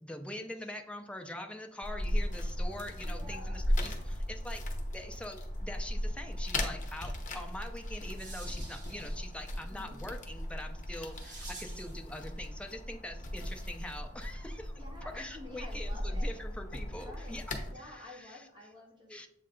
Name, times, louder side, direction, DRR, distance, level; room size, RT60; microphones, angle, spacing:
voice 1, 0.0-4.6 4.9-14.7 15.1-17.4 17.8-18.4 19.1-19.3, left 1 dB, 5° left, 3 dB, 0.5 m, -44 dB
sound 1, 1.8-17.7, left 1 dB, 40° left, 0.9 m, -37 dB
voice 2, 3.0-3.6 9.7-10.1 14.8-16.4 16.9-19.1, left 1 dB, 25° right, -3 dB, 1.8 m, -50 dB
sound 2, 8.0-12.0, right 3 dB, 40° right, 2.2 m, -51 dB
7.7 x 3.2 x 3.8 m, 0.73 s
head